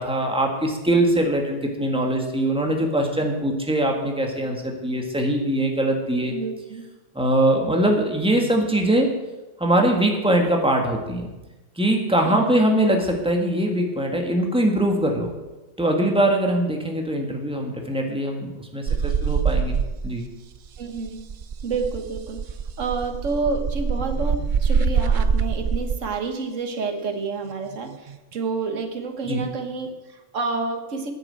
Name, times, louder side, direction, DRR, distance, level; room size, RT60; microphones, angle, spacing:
voice 1, 0.0-6.4 7.1-9.1 9.6-11.3 11.8-15.3 15.8-20.3 29.3-29.4, right 1 dB, 5° right, 1 dB, 1.8 m, -22 dB
voice 2, 6.3-6.9 12.2-12.6 20.8-21.2 21.6-22.4 22.8-31.1, right 4 dB, 85° right, 6 dB, 1.6 m, -29 dB
sound 1, 18.9-20.3 20.6-26.0 27.7-28.2, right 6 dB, 50° right, 0.6 m, -24 dB
9.9 x 9.3 x 7.7 m, 1.1 s
omnidirectional pair, 1.3 m